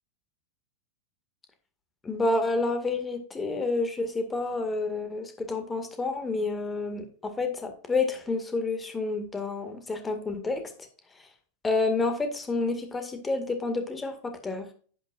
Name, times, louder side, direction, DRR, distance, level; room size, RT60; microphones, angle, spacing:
voice 1, 2.0-10.6 11.2-11.3 11.6-14.7, left 3 dB, 15° left, 6 dB, 2.0 m, -29 dB
10.5 x 9.0 x 2.5 m, 0.42 s
figure-of-eight pair, 90°, 0 cm